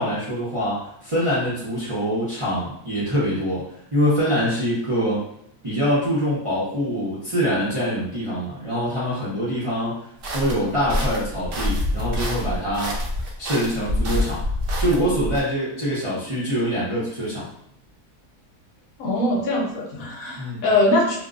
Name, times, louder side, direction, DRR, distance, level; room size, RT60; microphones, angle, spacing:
voice 1, 0.0-3.6 3.9-5.2 5.6-10.1 10.3-13.0 13.4-14.4 14.8-17.4 20.4-20.7, equal, 45° right, -9 dB, 0.4 m, -24 dB
sound 1, 10.2-15.4, left 1 dB, 65° right, 0.8 m, -26 dB
voice 2, 19.0-21.2, left 2 dB, 65° left, -2 dB, 1.1 m, -22 dB
2.8 x 2.1 x 2.4 m, 0.71 s
omnidirectional pair, 1.7 m